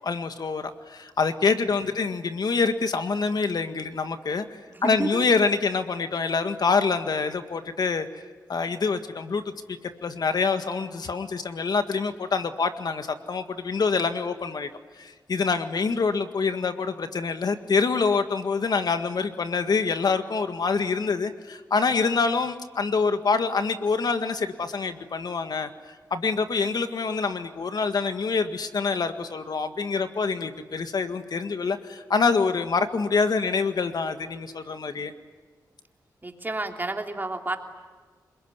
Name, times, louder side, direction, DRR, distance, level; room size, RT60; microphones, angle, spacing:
voice 1, 0.0-4.4 4.8-8.1 8.5-9.4 9.7-14.7 15.0-25.7 26.1-35.1, left 4 dB, 65° left, 8 dB, 1.8 m, -26 dB
voice 2, 4.7-5.2 36.2-37.6, right 2 dB, 25° right, 4 dB, 3.0 m, -30 dB
28.0 x 21.5 x 9.7 m, 1.5 s
cardioid pair, 70°, 7 cm